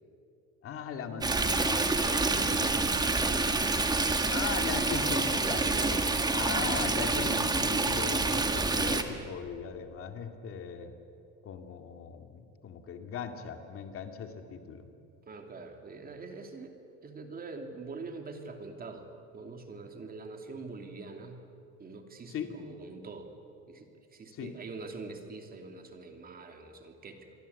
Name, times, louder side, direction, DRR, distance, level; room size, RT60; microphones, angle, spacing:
voice 1, 0.6-2.9 4.3-6.0 6.3-11.0 11.4-14.8 22.3-22.5 24.3-24.5, left 7 dB, 45° left, 6 dB, 2.2 m, -39 dB
Stream, 1.2-9.0, right 3 dB, 15° right, 1.7 m, -27 dB
voice 2, 1.8-3.8 5.5-5.9 15.3-16.8 17.0-19.1 19.3-21.5 21.8-23.3 23.7-27.3, right 3 dB, 30° right, 5 dB, 2.8 m, -44 dB
28.0 x 22.0 x 8.3 m, 2.7 s
cardioid pair, 135°, 30 cm